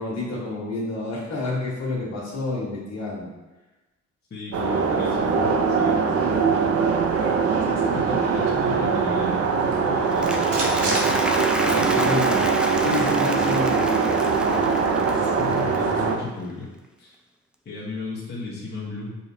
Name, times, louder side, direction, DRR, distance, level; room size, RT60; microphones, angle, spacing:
voice 1, 0.0-3.3 4.6-4.7 6.2-6.5 11.6-12.4 12.8-14.5 15.5-15.6, left 2 dB, 60° left, -4 dB, 1.4 m, -29 dB
voice 2, 4.3-6.3 7.6-11.2 11.7-12.4 15.1-16.7 17.0-17.2 17.6-19.1, left 3 dB, 35° left, -6 dB, 1.1 m, -35 dB
sound 1, 4.5-16.2, right 5 dB, 55° right, 0.5 m, -22 dB
sound 2, 9.6-12.0 12.3-12.4 12.7-14.6, right 2 dB, 75° right, 1.1 m, -35 dB
Applause, 10.0-16.3, equal, 5° right, 0.3 m, -31 dB
4.9 x 3.0 x 2.7 m, 1.1 s
cardioid pair, 90°, 30 cm